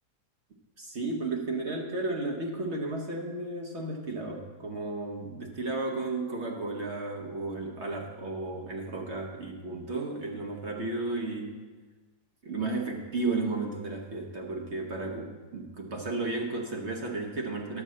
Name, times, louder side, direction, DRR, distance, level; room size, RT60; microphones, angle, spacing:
voice 1, 0.8-11.6 12.4-17.8, right 2 dB, 45° right, 1 dB, 1.1 m, -33 dB
11.0 x 5.3 x 7.5 m, 1.3 s
omnidirectional pair, 1.8 m